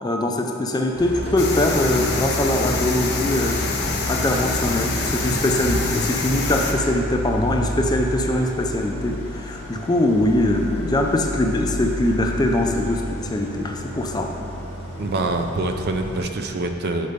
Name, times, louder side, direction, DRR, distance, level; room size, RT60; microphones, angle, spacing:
voice 1, 0.0-14.3, left 1 dB, 20° left, 3 dB, 0.4 m, -22 dB
Idling, 0.9-16.2, left 1 dB, 30° right, 1.0 m, -30 dB
sound 1, 1.4-6.7, left 3 dB, 50° left, 0.7 m, -26 dB
voice 2, 15.0-17.1, right 2 dB, 45° right, 5 dB, 0.4 m, -25 dB
6.5 x 4.5 x 5.1 m, 2.6 s
head